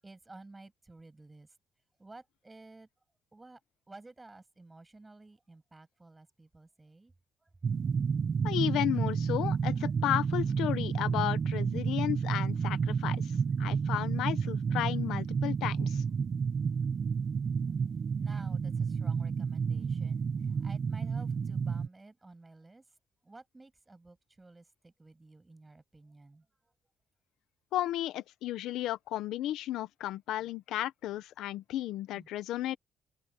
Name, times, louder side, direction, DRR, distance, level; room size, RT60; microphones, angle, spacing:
voice 1, 0.0-1.5 2.0-2.9 3.3-3.6 3.9-7.1 7.4-7.5 18.2-22.8 23.2-26.5 32.1-32.3, right 2 dB, 20° right, 7.5 m, -53 dB
sound 1, 7.6-21.9, right 6 dB, 45° right, 1.4 m, -31 dB
voice 2, 8.4-13.2 13.6-16.0 27.7-32.8, left 13 dB, 90° left, 1.0 m, -33 dB
cardioid pair, 90°, 0 cm